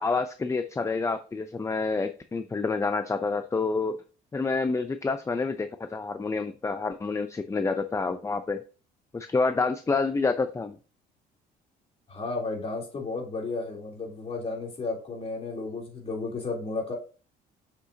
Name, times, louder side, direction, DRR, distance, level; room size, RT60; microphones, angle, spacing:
voice 1, 0.0-4.0 4.3-8.6 9.1-10.8, left 4 dB, 15° left, 9 dB, 0.6 m, -28 dB
voice 2, 12.1-16.9, left 3 dB, 35° left, -1 dB, 3.4 m, -33 dB
7.4 x 6.7 x 2.8 m, 0.36 s
cardioid pair, 110°, 17 cm